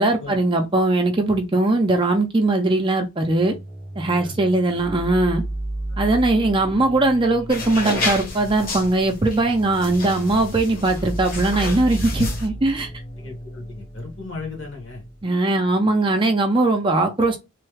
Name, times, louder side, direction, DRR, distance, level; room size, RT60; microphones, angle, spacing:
voice 1, 0.0-3.5 4.0-5.4 6.0-12.9 15.2-17.4, right 2 dB, 25° right, 0.5 m, -20 dB
sound 1, 3.3-15.2, right 1 dB, 80° left, 1.6 m, -34 dB
voice 2, 4.1-4.5 13.2-15.0, left 3 dB, 65° left, 1.4 m, -36 dB
sound 2, 7.5-12.5, left 2 dB, 45° left, 1.0 m, -30 dB
3.1 x 2.2 x 3.2 m
head